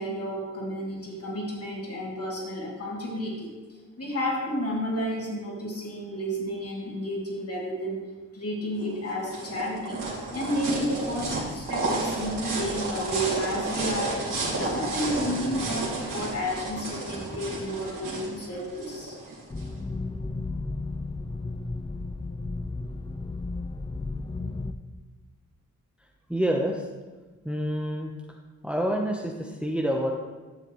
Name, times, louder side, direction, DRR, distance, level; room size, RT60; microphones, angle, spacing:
voice 1, 0.0-3.5 4.0-8.0 8.3-10.0 10.3-19.2, equal, 45° left, -3 dB, 3.0 m, -31 dB
sound 1, 8.8-19.7, right 2 dB, 70° right, 2.8 m, -32 dB
sound 2, 19.5-24.7, left 3 dB, 15° left, 0.5 m, -33 dB
voice 2, 26.3-26.9 27.4-28.1 28.6-30.1, equal, 5° right, 0 dB, 1.0 m, -27 dB
11.5 x 6.8 x 3.2 m, 1.3 s
cardioid pair, 55°, 33 cm